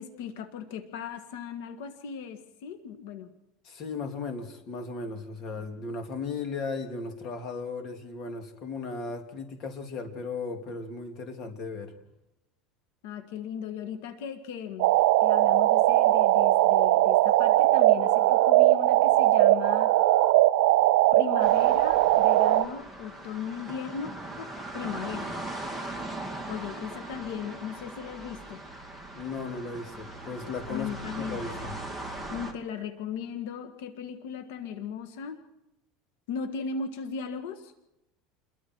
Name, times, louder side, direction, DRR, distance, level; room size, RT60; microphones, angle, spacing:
voice 1, 0.0-3.3 13.0-14.9 15.2-19.9 21.1-24.1 24.4-25.3 26.5-28.6 30.7-31.4 32.3-35.4 36.3-37.7, left 7 dB, 80° left, 8 dB, 1.8 m, -37 dB
voice 2, 3.6-11.9 29.1-30.9 31.2-31.7, left 4 dB, 40° left, 5 dB, 2.9 m, -36 dB
sound 1, 14.8-22.6, right 16 dB, 75° right, 1.2 m, -20 dB
sound 2, 21.4-32.5, right 2 dB, 5° left, 2.4 m, -39 dB
28.5 x 22.0 x 4.7 m, 0.91 s
cardioid pair, 155°, 0 cm